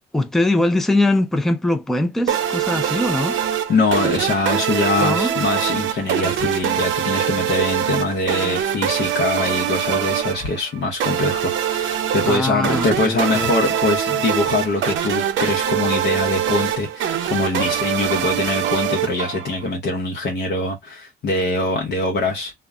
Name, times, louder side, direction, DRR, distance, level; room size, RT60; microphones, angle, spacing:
voice 1, 0.1-3.4 5.0-5.3 12.2-13.5, left 1 dB, ahead, 0.4 m, -21 dB
sound 1, 2.3-19.7, right 9 dB, 80° right, 0.6 m, -23 dB
voice 2, 3.7-22.5, left 2 dB, 60° left, 0.8 m, -23 dB
2.2 x 2.1 x 3.5 m
cardioid pair, 90°, 20 cm